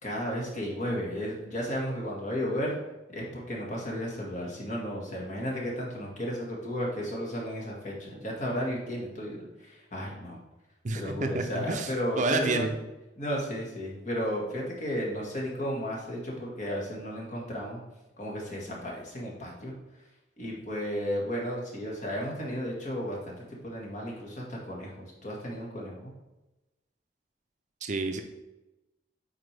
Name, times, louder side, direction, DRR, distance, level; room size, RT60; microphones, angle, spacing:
voice 1, 0.0-2.8 3.1-10.4 10.9-12.6 13.2-17.8 18.2-19.7 20.4-23.3 23.6-26.1, equal, 45° left, -3 dB, 1.7 m, -34 dB
voice 2, 10.8-11.9 12.2-12.8 27.8-28.2, right 3 dB, 45° right, 6 dB, 0.5 m, -29 dB
8.0 x 4.3 x 3.4 m, 1.0 s
head